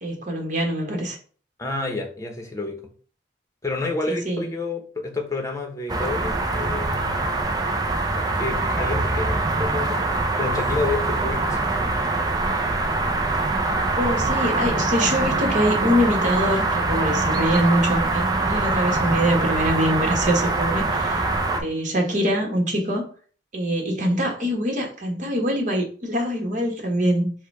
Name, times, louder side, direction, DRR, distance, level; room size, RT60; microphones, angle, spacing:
voice 1, 0.0-1.2 4.1-4.4 13.9-23.0 23.5-27.3, equal, 45° right, 2 dB, 1.3 m, -24 dB
voice 2, 1.6-2.8 3.6-7.3 8.3-10.0 10.4-11.9, left 3 dB, 20° left, 3 dB, 0.9 m, -29 dB
sound 1, 5.9-21.6, right 2 dB, 20° right, 0.5 m, -23 dB
4.7 x 2.3 x 4.7 m, 0.43 s
head